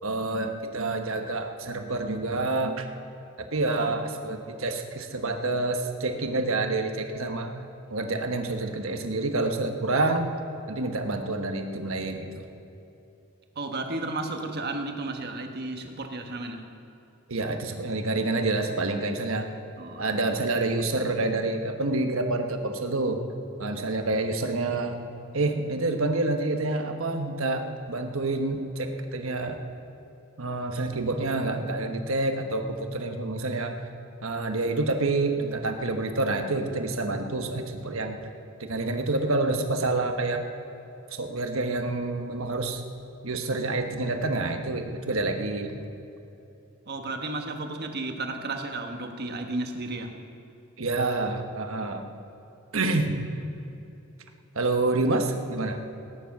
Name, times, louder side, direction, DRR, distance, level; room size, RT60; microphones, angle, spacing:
voice 1, 0.0-2.9 3.4-7.5 7.9-10.3 10.7-12.4 17.3-19.5 20.0-23.2 23.6-25.0 25.3-29.6 30.4-33.8 34.2-38.2 38.6-40.4 41.1-42.8 43.2-45.8 50.8-52.0 52.7-53.2 54.5-55.8, right 2 dB, 65° right, 5 dB, 1.2 m, -28 dB
voice 2, 3.7-4.0 13.5-16.7 19.8-20.1 46.8-50.1, right 2 dB, 50° right, 5 dB, 1.3 m, -33 dB
18.5 x 10.0 x 6.0 m, 2.9 s
head